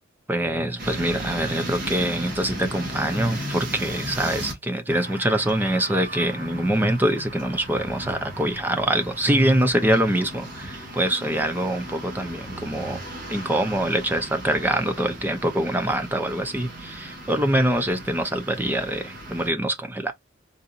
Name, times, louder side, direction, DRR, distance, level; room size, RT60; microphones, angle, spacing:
voice 1, 0.3-13.0 13.3-20.1, right 1 dB, 10° right, 0.5 m, -24 dB
sound 1, 0.8-4.5 4.9-19.5, right 1 dB, 45° right, 1.6 m, -36 dB
3.9 x 2.6 x 2.3 m
head